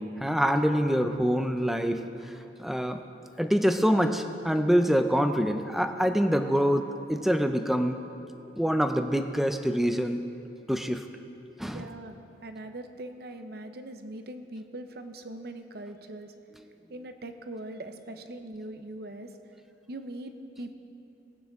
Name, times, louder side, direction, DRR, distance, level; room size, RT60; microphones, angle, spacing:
voice 1, 0.0-2.3 2.6-3.0 3.4-8.0 8.6-10.2 10.7-11.1 11.6-11.9, equal, ahead, 7 dB, 0.5 m, -25 dB
voice 2, 11.7-12.2 12.4-16.3 16.9-19.3 19.9-20.7, right 1 dB, 60° right, 8 dB, 0.7 m, -41 dB
20.0 x 8.9 x 3.6 m, 2.7 s
head